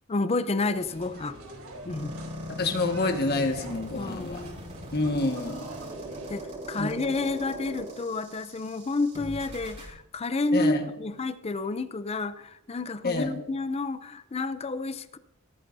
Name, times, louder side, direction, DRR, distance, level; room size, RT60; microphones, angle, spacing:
voice 1, 0.1-1.4 1.8-2.1 4.0-4.8 5.8-5.9 6.3-15.2, left 3 dB, 30° left, 14 dB, 0.5 m, -30 dB
sound 1, 0.7-6.4, right 1 dB, 70° right, 3.8 m, -46 dB
sound 2, 1.9-9.9, equal, 35° right, 4.7 m, -40 dB
voice 2, 2.6-4.4 4.9-5.8 6.8-6.9 10.5-10.8 13.0-13.3, left 2 dB, 45° left, 5 dB, 1.6 m, -28 dB
17.0 x 14.0 x 2.7 m, 0.90 s
head